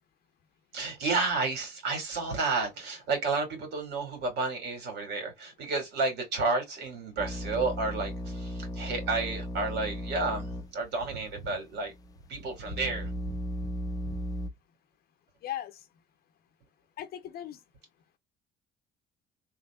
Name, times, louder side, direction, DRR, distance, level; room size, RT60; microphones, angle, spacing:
voice 1, 0.7-11.9 12.3-13.4, right 3 dB, 80° right, 2.5 m, -31 dB
sound 1, 7.2-10.7 11.0-11.1 11.7-14.5, left 1 dB, 20° left, 0.5 m, -36 dB
voice 2, 17.0-17.6, left 12 dB, 65° left, 0.7 m, -37 dB
3.6 x 3.2 x 2.4 m
cardioid pair, 110°, 17 cm